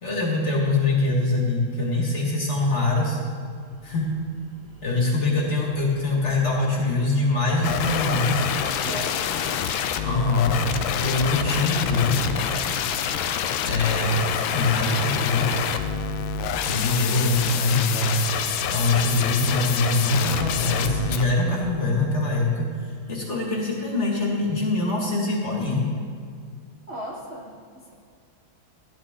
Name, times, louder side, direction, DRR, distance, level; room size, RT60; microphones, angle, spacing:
voice 1, 0.0-3.2 3.8-4.1 4.8-8.5 10.0-10.6 10.9-12.3 13.6-14.2 14.5-15.5 16.6-18.2 18.7-25.9, left 2 dB, 35° left, -3 dB, 2.1 m, -23 dB
sound 1, 3.6-21.7, right 2 dB, 70° right, 3.7 m, -48 dB
sound 2, 7.6-21.2, left 8 dB, 80° left, 1.4 m, -27 dB
voice 2, 8.8-9.2 26.9-27.9, right 1 dB, 40° right, -4 dB, 1.1 m, -36 dB
14.5 x 10.5 x 3.7 m, 2.1 s
omnidirectional pair, 2.3 m